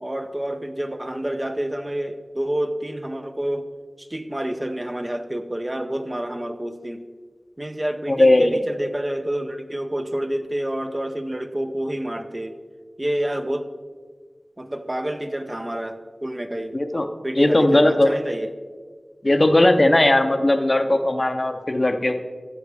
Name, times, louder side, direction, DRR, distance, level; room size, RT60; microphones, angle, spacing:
voice 1, 0.0-3.6 4.0-7.0 7.6-12.6 13.0-13.6 14.6-16.8 17.2-18.5, right 1 dB, 25° right, 7 dB, 0.6 m, -28 dB
voice 2, 8.1-8.6 16.7-17.1 17.4-18.1 19.2-22.2, left 1 dB, 35° left, 8 dB, 0.6 m, -18 dB
13.0 x 7.4 x 3.4 m, 1.5 s
wide cardioid pair, 75°, 0 cm